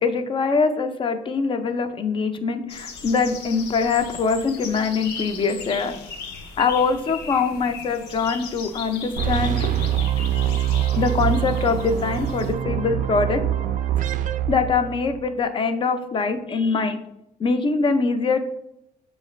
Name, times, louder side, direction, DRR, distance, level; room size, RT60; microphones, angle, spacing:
voice 1, 0.0-5.9 6.6-9.6 11.0-13.4 14.5-17.0 17.4-18.4, left 4 dB, 30° left, 8 dB, 0.5 m, -23 dB
sound 1, 2.7-12.5, left 5 dB, 75° left, 0.6 m, -37 dB
sound 2, 9.2-15.3, right 11 dB, 50° right, 0.4 m, -24 dB
7.0 x 2.4 x 3.0 m, 0.81 s
cardioid pair, 110°, 17 cm